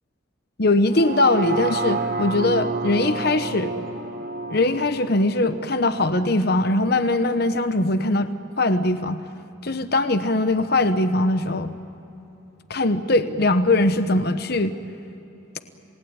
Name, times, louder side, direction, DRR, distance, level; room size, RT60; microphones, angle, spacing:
voice 1, 0.6-3.7 4.5-8.3 8.6-9.2 9.6-11.7 12.7-14.7, left 2 dB, 50° left, 10 dB, 1.0 m, -21 dB
sound 1, 0.9-7.0 7.4-7.5, right 3 dB, 45° right, 1.4 m, -30 dB
27.5 x 19.5 x 8.8 m, 3.0 s
head